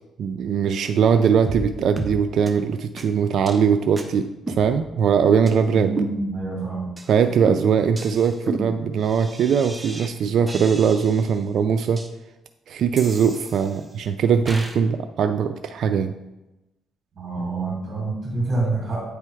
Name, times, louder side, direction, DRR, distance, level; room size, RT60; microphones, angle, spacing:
voice 1, 0.2-5.9 7.1-12.0 12.7-16.1, right 7 dB, 65° right, 7 dB, 0.3 m, -20 dB
sound 1, 1.5-1.7 2.0-2.2 2.5-2.6 3.0-3.1 3.5-3.6 4.0-4.1 4.5-5.1 5.5-5.6 6.0-6.6 7.0-7.1 7.5-10.1 10.5-11.4 12.0-12.1 13.0-13.9 14.5-14.8, right 2 dB, 15° right, 0.8 m, -33 dB
voice 2, 5.7-7.0 17.2-19.0, right 3 dB, 45° right, -3 dB, 2.0 m, -27 dB
8.4 x 3.4 x 4.6 m, 0.98 s
cardioid pair, 90°, 0 cm